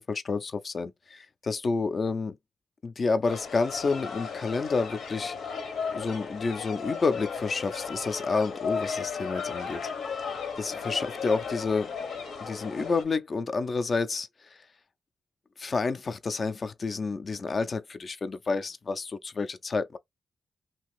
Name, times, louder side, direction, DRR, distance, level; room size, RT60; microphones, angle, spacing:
voice 1, 0.0-2.4 2.8-5.6 5.9-9.8 10.1-10.3 10.6-11.9 12.4-14.3 15.6-20.0, left 4 dB, 45° left, 0.4 m, -29 dB
sound 1, 3.3-13.0, left 6 dB, 80° left, 0.9 m, -35 dB
2.8 x 2.6 x 3.1 m
cardioid pair, 85°, 0 cm